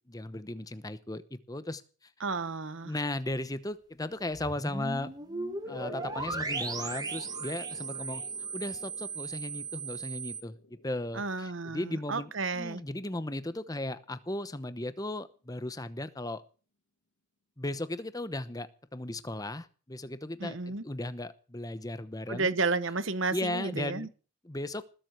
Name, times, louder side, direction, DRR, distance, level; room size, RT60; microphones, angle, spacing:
voice 1, 0.1-2.1 2.8-5.1 5.7-8.2 8.5-10.6 10.8-16.4 17.6-22.5 23.3-24.1 24.4-24.8, left 1 dB, 15° left, 0.9 m, -36 dB
voice 2, 2.2-2.9 11.1-12.8 20.4-20.8 22.3-24.1, right 3 dB, 65° right, 1.1 m, -32 dB
sound 1, 4.3-10.4, right 4 dB, 20° right, 1.4 m, -37 dB
sound 2, 5.6-12.8, left 2 dB, 80° left, 1.6 m, -50 dB
20.0 x 7.7 x 8.1 m
head